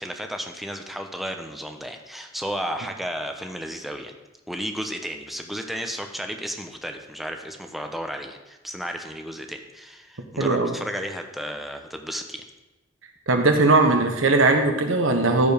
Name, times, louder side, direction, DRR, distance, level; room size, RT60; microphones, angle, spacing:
voice 1, 0.0-4.1 4.5-12.4, equal, ahead, 4 dB, 0.9 m, -33 dB
voice 2, 10.4-10.7 13.3-15.5, right 3 dB, 75° right, 5 dB, 1.3 m, -19 dB
14.0 x 5.2 x 5.2 m, 1.1 s
head